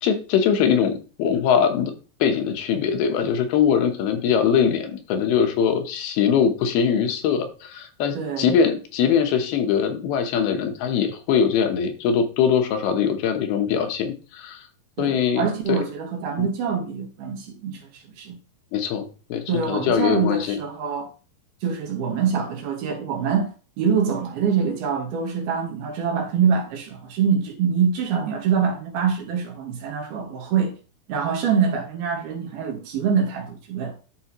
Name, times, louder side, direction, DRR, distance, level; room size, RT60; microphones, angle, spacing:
voice 1, 0.0-1.9 2.2-14.6 15.0-15.8 16.4-16.5 18.7-20.6, left 7 dB, 80° left, 2.9 m, -22 dB
voice 2, 8.1-8.6 15.0-18.4 19.5-21.1 21.6-23.5 23.8-30.7 31.1-33.9, right 6 dB, 80° right, 3.4 m, -25 dB
12.0 x 4.2 x 2.9 m
omnidirectional pair, 4.4 m